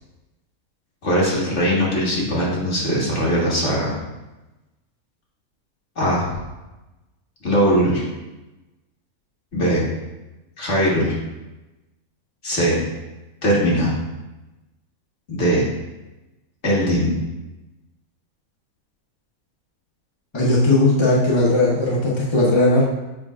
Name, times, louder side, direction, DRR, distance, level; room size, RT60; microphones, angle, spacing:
voice 1, 1.0-4.0 6.0-6.3 7.4-8.0 9.5-9.8 10.6-11.1 12.4-12.8 13.4-13.9 15.3-15.7 16.6-17.2, equal, 50° left, -5 dB, 1.8 m, -20 dB
voice 2, 20.3-22.8, left 2 dB, 20° left, -5 dB, 1.0 m, -17 dB
7.2 x 5.5 x 2.4 m, 1.0 s
omnidirectional pair, 1.6 m